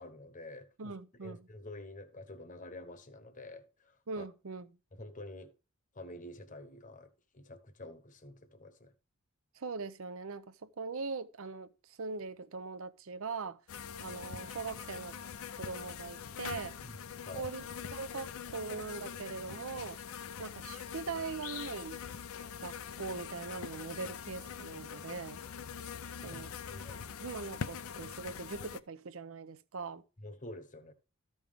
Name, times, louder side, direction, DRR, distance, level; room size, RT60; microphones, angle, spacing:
voice 1, 0.0-0.9 1.2-4.3 4.9-5.5 5.9-8.9 16.8-16.9 17.2-17.5 26.2-27.2 30.2-30.9, left 1 dB, 35° left, 1.0 m, -48 dB
voice 2, 0.8-1.5 4.1-4.7 9.6-13.6 14.0-15.2 15.6-16.8 17.3-17.6 17.9-20.0 20.4-22.0 22.6-25.4 26.2-26.5 27.2-30.0, right 4 dB, 65° right, 0.6 m, -41 dB
sound 1, 13.7-28.8, left 7 dB, 70° left, 0.5 m, -43 dB
13.5 x 5.4 x 3.5 m
head